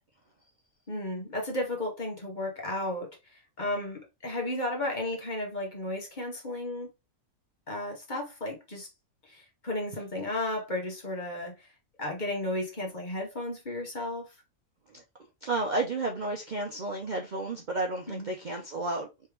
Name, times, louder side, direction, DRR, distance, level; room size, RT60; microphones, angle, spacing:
voice 1, 0.9-6.9 7.7-8.9 9.2-11.7 12.0-14.3 18.1-18.3, left 1 dB, 35° left, 1.2 m, -34 dB
voice 2, 15.4-19.1, right 2 dB, 45° right, 0.6 m, -32 dB
3.4 x 3.2 x 3.2 m
omnidirectional pair, 1.5 m